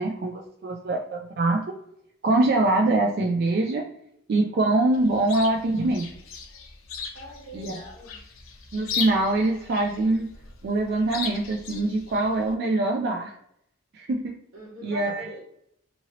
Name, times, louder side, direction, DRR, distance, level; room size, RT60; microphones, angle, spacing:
voice 1, 0.0-1.6 2.2-3.9 4.3-6.1 7.5-7.8 8.7-10.3 10.6-13.3 13.9-14.3 14.8-15.3, right 2 dB, 50° right, 1 dB, 0.3 m, -24 dB
Chirp tweet, 4.9-12.5, left 6 dB, 75° left, 0.5 m, -37 dB
voice 2, 7.1-8.2 14.5-15.4, equal, 85° right, -2 dB, 1.3 m, -42 dB
2.8 x 2.7 x 2.8 m, 0.73 s
head